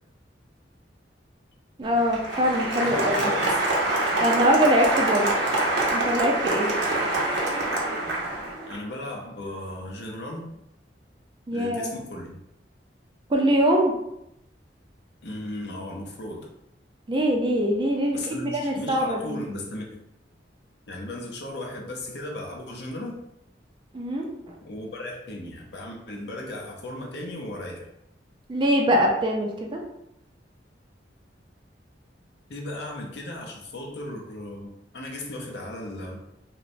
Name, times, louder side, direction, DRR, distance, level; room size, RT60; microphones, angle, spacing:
voice 1, 1.8-3.3 4.2-5.3 5.9-6.7 11.5-11.9 13.3-13.9 17.1-19.4 23.9-24.3 28.5-29.8, equal, 25° right, 0 dB, 0.4 m, -23 dB
Applause, 1.8-8.8, right 2 dB, 80° right, 0.6 m, -25 dB
voice 2, 2.8-3.6 8.7-10.5 11.5-12.4 15.2-16.5 18.1-20.0 20.9-23.2 24.6-27.9 32.5-36.2, left 1 dB, 65° left, 0 dB, 0.5 m, -36 dB
3.0 x 2.0 x 2.5 m, 0.82 s
head